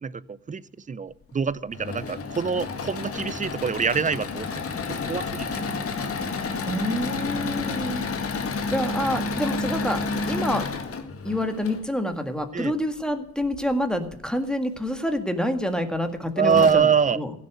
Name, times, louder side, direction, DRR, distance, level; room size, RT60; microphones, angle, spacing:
voice 1, 0.0-4.6 4.9-5.7 6.2-6.3 9.1-9.2 12.5-12.7 16.4-17.2, right 6 dB, 25° right, 19 dB, 0.6 m, -25 dB
Engine / Mechanisms, 1.5-11.8 13.4-14.2 14.8-14.9 15.2-15.3 16.1-16.2 16.5-16.7, left 4 dB, 50° left, 2.0 m, -30 dB
voice 2, 6.6-10.7 11.2-16.9 17.1-17.3, equal, 5° left, 7 dB, 1.8 m, -27 dB
15.5 x 7.5 x 8.1 m, 0.76 s
cardioid pair, 90°, 30 cm